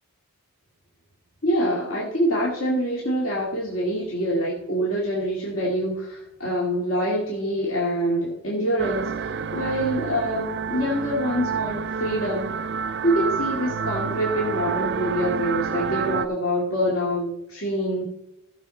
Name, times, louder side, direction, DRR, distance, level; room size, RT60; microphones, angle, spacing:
voice 1, 1.4-12.5 13.0-18.0, equal, 70° left, -4 dB, 2.0 m, -25 dB
sound 1, 8.8-16.3, right 6 dB, 50° right, 0.4 m, -29 dB
15.5 x 6.2 x 4.3 m, 0.90 s
head